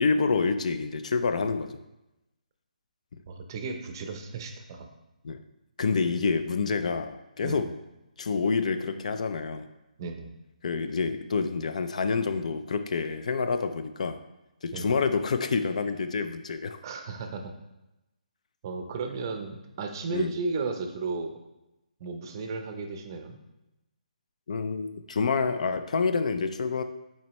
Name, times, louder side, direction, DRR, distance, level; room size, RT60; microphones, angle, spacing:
voice 1, 0.0-1.8 5.2-5.4 5.8-7.7 8.2-9.7 10.6-14.2 14.6-16.8 20.1-20.3 24.5-26.8, left 4 dB, 55° left, 9 dB, 0.4 m, -27 dB
voice 2, 3.3-4.9 7.4-7.7 10.0-10.3 14.7-15.0 16.8-17.5 18.6-21.4 22.0-23.4, right 3 dB, 30° right, 5 dB, 0.6 m, -34 dB
7.4 x 4.3 x 3.1 m, 0.95 s
hypercardioid pair, 165°, 5 cm